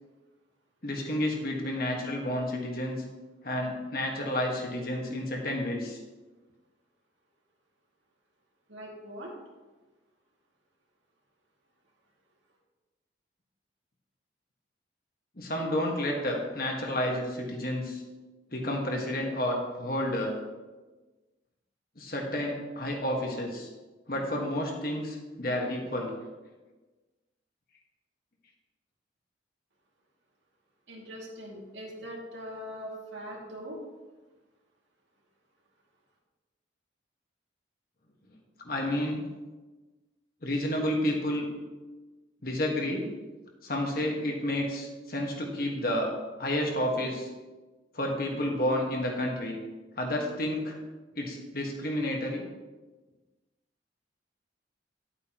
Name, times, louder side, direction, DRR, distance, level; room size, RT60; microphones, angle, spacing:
voice 1, 0.8-3.0 3.4-6.0 15.4-18.0 18.5-20.3 22.0-23.7 24.1-26.1 38.6-39.2 40.4-41.5 42.4-43.1 43.6-46.1 46.4-47.3 47.9-49.6 50.0-50.8 51.1-52.4, left 1 dB, 50° left, 0 dB, 1.6 m, -30 dB
voice 2, 8.7-9.3 30.9-33.8, equal, 85° right, -2 dB, 2.5 m, -41 dB
11.0 x 8.6 x 3.0 m, 1.2 s
head